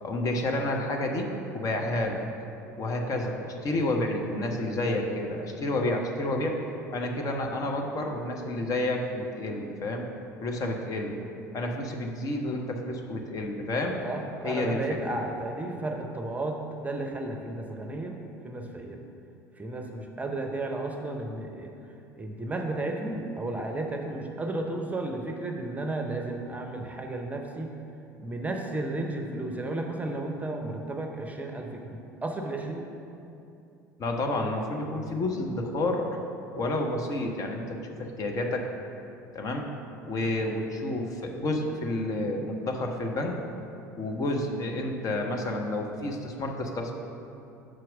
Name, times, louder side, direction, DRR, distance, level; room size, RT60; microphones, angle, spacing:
voice 1, 0.0-1.3 1.5-2.3 2.8-6.6 6.9-10.0 10.4-11.2 11.5-14.0 14.4-14.8 34.0-36.1 36.6-38.7 39.3-39.7 40.0-43.4 44.0-46.9, left 1 dB, 40° left, 2 dB, 0.9 m, -30 dB
voice 2, 14.0-18.2 18.4-19.0 19.6-21.7 22.2-27.7 28.2-32.9, right 2 dB, 15° right, 3 dB, 0.7 m, -33 dB
6.4 x 4.5 x 6.0 m, 2.7 s
figure-of-eight pair, 65°, 9 cm